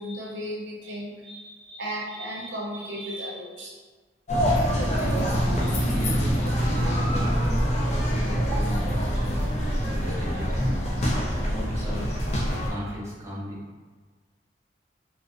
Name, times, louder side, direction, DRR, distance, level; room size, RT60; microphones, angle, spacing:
voice 1, 0.0-3.7, equal, 85° right, -4 dB, 0.7 m, -35 dB
sound 1, 4.3-12.7, equal, 40° left, 0.4 m, -25 dB
voice 2, 4.5-5.3 5.6-7.3 8.2-9.5 9.8-10.8 11.5-12.0 12.6-13.7, equal, 15° right, -8 dB, 0.5 m, -36 dB
2.5 x 2.1 x 2.5 m, 1.4 s
head